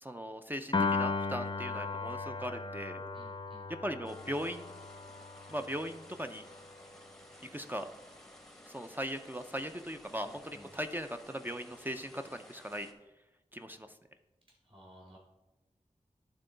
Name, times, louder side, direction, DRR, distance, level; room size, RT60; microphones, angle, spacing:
voice 1, 0.0-3.0 3.8-4.7 5.5-6.4 7.5-7.9 8.7-12.9 13.5-13.9, equal, 15° right, 6 dB, 0.4 m, -39 dB
Piano, 0.7-7.1, left 4 dB, 40° left, 0.5 m, -37 dB
voice 2, 3.1-3.7 10.2-10.7 14.6-15.2, equal, 45° right, -4 dB, 2.2 m, -56 dB
sound 1, 4.0-12.9, left 1 dB, 5° left, 0.8 m, -56 dB
11.0 x 3.7 x 3.8 m, 1.0 s
wide cardioid pair, 75°, 13 cm